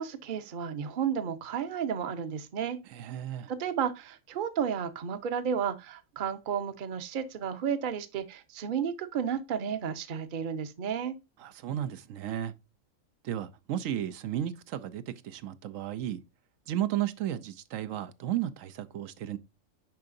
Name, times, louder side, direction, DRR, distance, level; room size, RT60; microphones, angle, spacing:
voice 1, 0.0-2.8 3.5-11.2, right 7 dB, 45° right, 0.8 m, -32 dB
voice 2, 2.9-3.5 11.4-12.5 13.2-16.2 16.7-19.4, right 11 dB, 85° right, 1.0 m, -34 dB
10.5 x 3.7 x 2.5 m
omnidirectional pair, 1.3 m